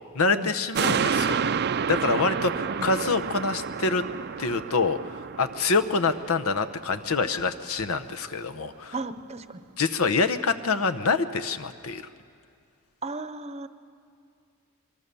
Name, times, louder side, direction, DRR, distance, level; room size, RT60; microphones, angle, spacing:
voice 1, 0.1-1.4 1.9-4.0 4.4-8.9 9.8-12.0, left 4 dB, 75° left, 9 dB, 1.0 m, -26 dB
sound 1, 0.8-7.4 7.8-7.9, right 6 dB, 50° right, 0.5 m, -30 dB
voice 2, 8.9-9.6 13.0-13.7, right 2 dB, 30° right, 11 dB, 0.8 m, -35 dB
25.5 x 23.0 x 6.9 m, 2.4 s
head